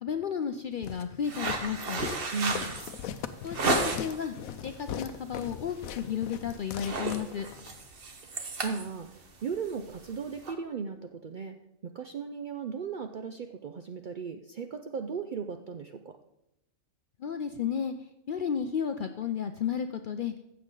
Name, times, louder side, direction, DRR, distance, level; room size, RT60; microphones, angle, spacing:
voice 1, 0.0-2.0 3.4-4.4 4.6-7.5 17.2-17.9 18.3-20.3, left 7 dB, 70° left, 8 dB, 0.4 m, -33 dB
Walk footsteps, 0.8-7.7, left 9 dB, 85° left, 1.1 m, -40 dB
sound 1, 1.2-4.3 4.7-5.1 5.4-5.6 5.9-6.3 6.6-10.5, right 2 dB, 45° right, 1.2 m, -33 dB
voice 2, 2.3-2.8 8.2-16.2, right 5 dB, 65° right, 6 dB, 0.4 m, -37 dB
15.0 x 7.1 x 3.8 m, 0.86 s
omnidirectional pair, 1.4 m